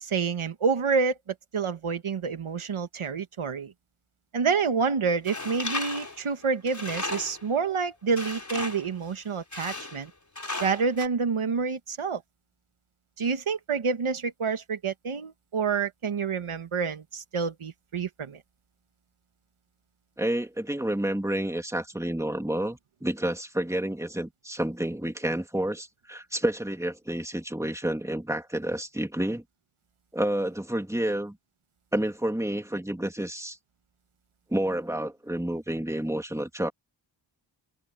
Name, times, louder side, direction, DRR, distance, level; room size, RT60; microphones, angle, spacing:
voice 1, 0.0-1.2 1.5-3.7 4.3-10.1 10.6-12.2 13.2-18.4, right 5 dB, 90° right, 1.6 m, -28 dB
Tools, 5.2-7.5 8.2-8.9 9.5-10.1 10.3-11.1, left 2 dB, 35° left, 4.9 m, -35 dB
voice 2, 20.2-29.4 30.1-31.4 31.9-33.6 34.5-36.7, right 1 dB, 5° right, 2.6 m, -29 dB
wide cardioid pair, 70°, 48 cm